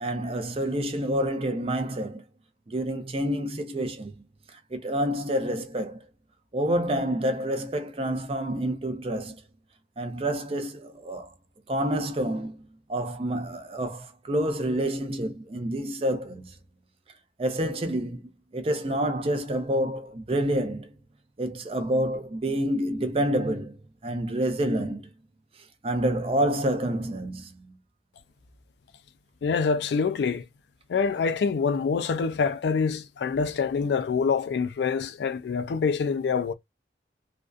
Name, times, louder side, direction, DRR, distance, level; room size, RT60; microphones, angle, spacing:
voice 1, 0.0-2.2 2.7-4.1 4.7-6.0 6.5-9.4 10.0-11.3 11.7-12.6 12.9-16.5 17.4-18.2 18.5-20.9 21.4-23.8 24.0-25.1 25.8-27.7, right 1 dB, 30° right, 0.4 m, -28 dB
voice 2, 29.4-30.4 30.9-36.5, left 5 dB, 65° left, 0.3 m, -26 dB
2.4 x 2.2 x 2.3 m
head